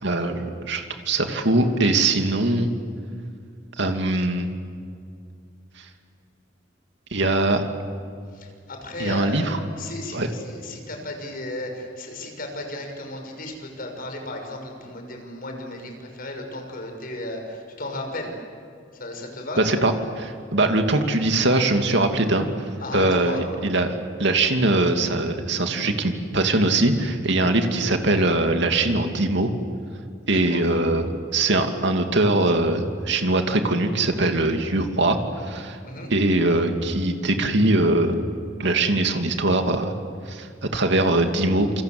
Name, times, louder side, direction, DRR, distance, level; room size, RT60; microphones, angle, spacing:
voice 1, 0.0-2.7 3.8-4.5 7.1-7.7 9.0-9.6 10.1-10.3 19.6-22.5 22.9-29.5 30.3-35.2 35.4-35.8 36.1-38.2 38.6-39.9 40.3-41.8, right 2 dB, 65° right, 5 dB, 2.6 m, -22 dB
voice 2, 8.3-9.5 9.8-18.3 18.9-19.6 22.8-23.4 30.5-30.6 35.8-36.1, left 1 dB, 50° left, 3 dB, 6.1 m, -34 dB
28.5 x 25.5 x 8.0 m, 2.4 s
head